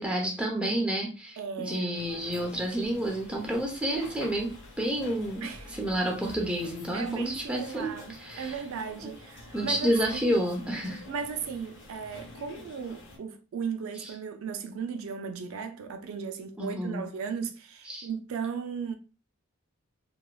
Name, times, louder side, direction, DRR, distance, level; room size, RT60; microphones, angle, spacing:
voice 1, 0.0-4.5 4.8-8.6 9.0-9.1 9.5-11.0 14.0-14.1 16.6-17.0 17.8-18.1, right 1 dB, 5° right, 0.6 m, -30 dB
voice 2, 1.4-2.0 5.4-5.7 6.9-10.2 11.1-19.0, right 6 dB, 70° right, 0.3 m, -36 dB
sound 1, 1.9-13.2, left 1 dB, 60° left, 1.2 m, -47 dB
3.0 x 2.3 x 2.2 m
head